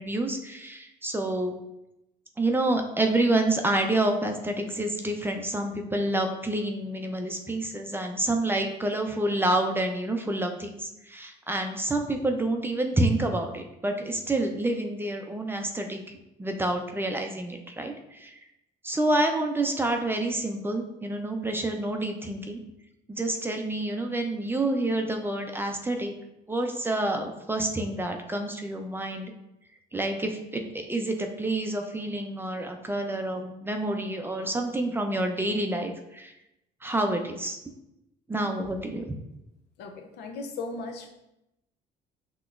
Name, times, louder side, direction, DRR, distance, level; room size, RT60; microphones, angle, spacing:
voice 1, 0.0-1.6 2.4-16.0 16.4-18.3 18.8-22.6 23.1-26.1 26.5-29.3 29.9-36.3 36.8-37.6 38.3-39.1, right 1 dB, 15° right, 4 dB, 0.4 m, -28 dB
voice 2, 39.8-41.1, left 3 dB, 80° left, 4 dB, 0.6 m, -37 dB
5.8 x 2.9 x 2.4 m, 0.89 s
cardioid pair, 110°, 17 cm